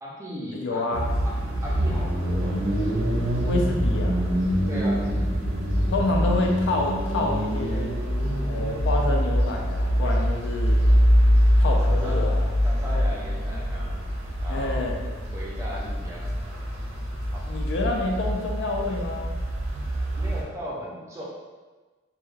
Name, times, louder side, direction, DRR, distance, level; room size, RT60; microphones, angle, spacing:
voice 1, 0.0-0.9 1.6-2.6 4.7-5.1 11.8-12.2 12.6-14.1 14.4-16.4 17.3-17.5 20.1-21.2, equal, 15° right, -6 dB, 0.4 m, -37 dB
voice 2, 0.5-1.1 3.4-4.2 5.9-8.0 8.5-10.9 11.6-12.5 14.5-15.0 17.5-19.4, left 2 dB, 60° left, 0 dB, 0.3 m, -28 dB
sound 1, 0.9-20.4, equal, 85° right, 0.5 m, -24 dB
2.2 x 2.2 x 3.1 m, 1.3 s
head